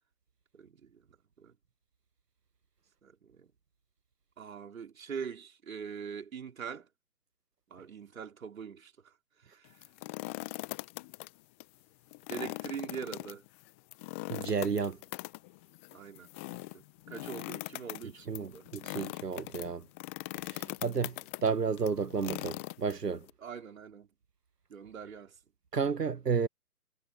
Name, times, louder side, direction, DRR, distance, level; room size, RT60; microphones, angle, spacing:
voice 1, 0.5-1.5 3.0-3.5 4.4-6.9 7.7-9.1 9.4-9.8 12.3-13.4 15.9-18.7 20.5-20.8 23.4-24.1 24.7-25.4, right 7 dB, 60° right, 4.5 m, -43 dB
sound 1, 9.7-11.3 11.6-11.7 12.1-23.3, left 23 dB, 10° left, 0.7 m, -41 dB
voice 2, 14.3-15.0 18.3-19.8 20.4-23.3 25.7-26.5, right 5 dB, 85° right, 1.2 m, -32 dB
figure-of-eight pair, 140°, 46 cm